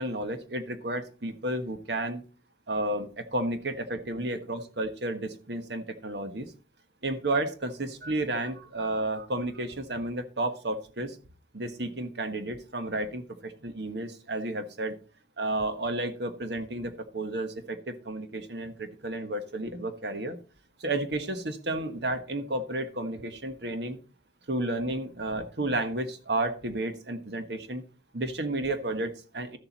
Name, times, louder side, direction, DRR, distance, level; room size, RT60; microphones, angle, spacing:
voice 1, 0.0-2.2 2.7-6.5 7.0-11.2 11.5-14.9 15.4-20.4 20.8-24.0 24.5-27.8 28.1-29.6, right 1 dB, 65° right, 8 dB, 1.3 m, -32 dB
13.0 x 7.3 x 4.0 m, 0.37 s
head